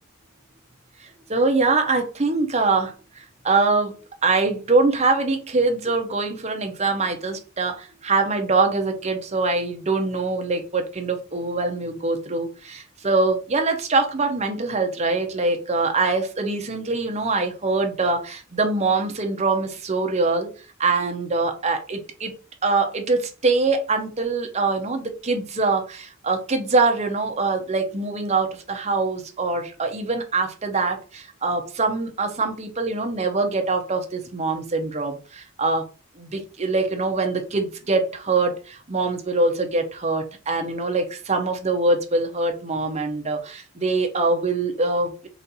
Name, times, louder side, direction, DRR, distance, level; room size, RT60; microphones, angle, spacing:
voice 1, 1.3-4.0 4.2-20.5 20.8-22.3 22.6-35.8 36.2-45.3, right 3 dB, 30° right, 4 dB, 0.8 m, -23 dB
4.2 x 2.6 x 3.9 m, 0.35 s
head